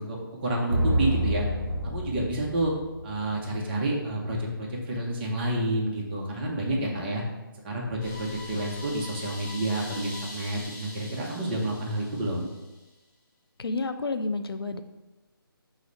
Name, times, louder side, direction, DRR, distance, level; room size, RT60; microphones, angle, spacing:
voice 1, 0.0-1.5 1.8-2.7 3.0-7.2 7.6-12.5, right 1 dB, 25° right, -2 dB, 0.6 m, -29 dB
sound 1, 0.7-3.4, right 1 dB, 60° right, 0.9 m, -28 dB
sound 2, 8.0-12.8, left 2 dB, 10° left, 0.8 m, -43 dB
voice 2, 13.6-14.8, left 3 dB, 85° left, 9 dB, 0.4 m, -30 dB
5.0 x 2.0 x 3.9 m, 1.1 s
figure-of-eight pair, 150°, 12 cm